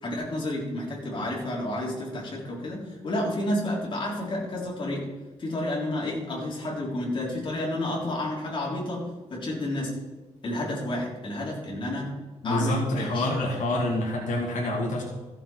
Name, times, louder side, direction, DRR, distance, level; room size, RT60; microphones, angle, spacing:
voice 1, 0.0-5.1 5.4-10.0 10.4-12.1 12.4-13.3, left 1 dB, 40° left, -3 dB, 3.5 m, -30 dB
voice 2, 12.4-15.0, left 1 dB, 85° left, -1 dB, 2.0 m, -27 dB
14.5 x 7.2 x 4.4 m, 1.3 s
wide cardioid pair, 135°, 13 cm